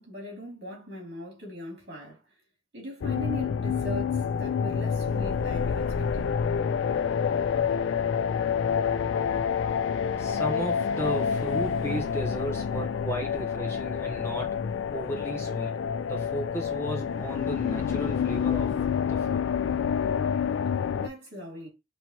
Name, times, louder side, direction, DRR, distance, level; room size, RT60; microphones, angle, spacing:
voice 1, 0.0-2.2 2.7-6.3 20.9-21.7, equal, 60° right, 2.4 m, -40 dB
sound 1, 3.0-21.1, left 7 dB, 90° left, 0.3 m, -28 dB
voice 2, 10.2-14.6 14.9-15.8 16.0-18.7 19.1-19.4, right 1 dB, 15° left, 0.9 m, -35 dB
6.0 x 2.9 x 2.9 m
head